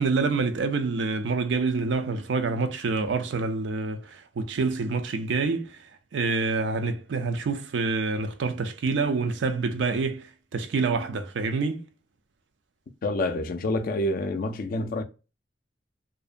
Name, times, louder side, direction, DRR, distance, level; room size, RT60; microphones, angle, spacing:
voice 1, 0.0-5.8 6.1-11.8, right 4 dB, 75° right, 0.4 m, -27 dB
voice 2, 13.0-15.0, left 1 dB, 50° left, 0.4 m, -27 dB
2.6 x 2.1 x 2.4 m
head